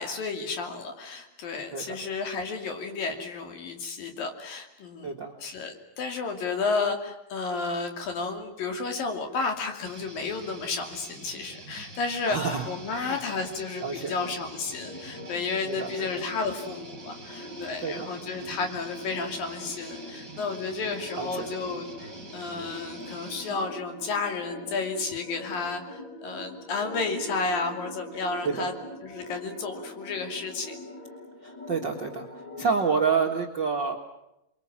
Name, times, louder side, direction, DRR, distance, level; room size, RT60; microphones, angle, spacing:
voice 1, 0.0-5.1 5.4-28.7 29.0-30.8, left 4 dB, 65° left, 5 dB, 4.5 m, -32 dB
voice 2, 5.0-5.3 12.3-13.2 13.8-14.2 15.7-16.2 17.8-18.1 21.2-21.5 28.4-28.7 31.4-34.0, right 5 dB, 45° right, 1 dB, 1.5 m, -29 dB
sound 1, 9.9-23.6, right 3 dB, 25° right, 4.7 m, -46 dB
sound 2, 14.1-32.8, left 1 dB, 35° left, 2.6 m, -43 dB
28.5 x 23.0 x 7.5 m, 0.86 s
omnidirectional pair, 4.4 m